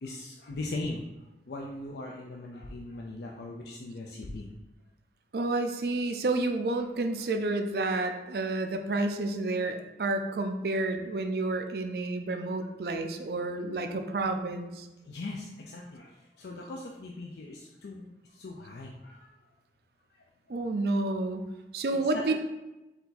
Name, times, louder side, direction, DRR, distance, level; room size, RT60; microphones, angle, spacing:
voice 1, 0.0-1.0 1.5-4.5 7.2-7.3 15.0-19.3 20.1-20.2 22.1-22.3, left 2 dB, 65° left, -1 dB, 0.4 m, -40 dB
voice 2, 5.3-14.9 20.5-21.5 21.7-22.3, right 2 dB, 60° right, 6 dB, 0.4 m, -30 dB
4.6 x 2.6 x 3.9 m, 1.0 s
head